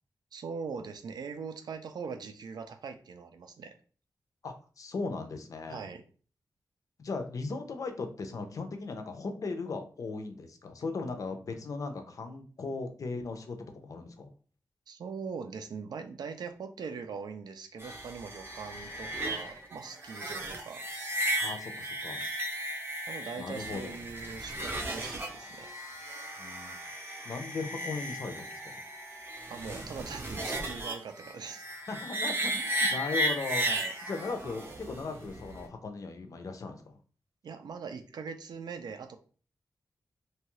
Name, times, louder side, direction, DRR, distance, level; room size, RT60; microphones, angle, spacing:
voice 1, 0.3-3.7 5.7-6.0 14.9-20.8 23.1-25.7 29.4-31.6 33.7-33.9 37.4-39.2, right 5 dB, 80° right, 7 dB, 0.4 m, -41 dB
voice 2, 4.4-5.8 7.0-14.3 21.4-22.2 23.4-24.0 26.4-26.7 27.2-28.7 31.9-33.7 34.0-36.8, left 3 dB, 55° left, 6 dB, 0.5 m, -38 dB
sound 1, 17.8-35.7, right 1 dB, 30° right, 0.6 m, -35 dB
2.8 x 2.3 x 2.9 m, 0.40 s
wide cardioid pair, 180°, 7 cm